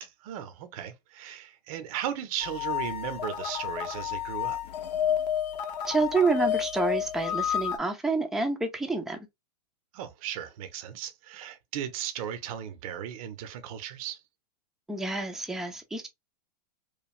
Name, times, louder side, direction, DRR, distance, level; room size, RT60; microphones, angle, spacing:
voice 1, 0.0-4.6 9.9-14.2, right 10 dB, 55° right, 0.6 m, -36 dB
sound 1, 2.4-7.8, left 9 dB, 75° left, 0.6 m, -30 dB
voice 2, 5.9-9.2 14.9-16.1, right 3 dB, ahead, 0.4 m, -28 dB
3.1 x 2.2 x 2.4 m
hypercardioid pair, 125°, 21 cm